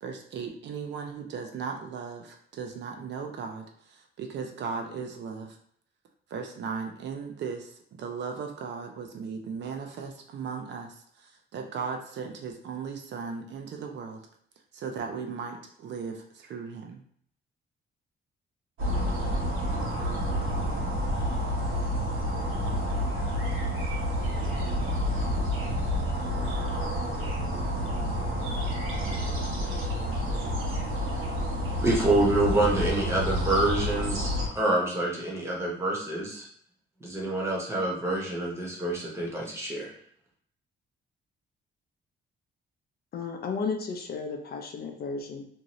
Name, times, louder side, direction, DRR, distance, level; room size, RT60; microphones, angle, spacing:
voice 1, 0.0-5.6 6.3-14.2 14.7-17.0, right 5 dB, 60° right, 3 dB, 0.5 m, -37 dB
sound 1, 18.8-34.5, equal, 85° right, 0.9 m, -29 dB
voice 2, 31.8-34.3 34.5-36.5 37.0-39.9, right 2 dB, 15° right, -3 dB, 0.8 m, -27 dB
voice 3, 43.1-45.4, left 4 dB, 50° left, 3 dB, 0.5 m, -33 dB
2.7 x 2.4 x 3.0 m, 0.65 s
cardioid pair, 170°, 20 cm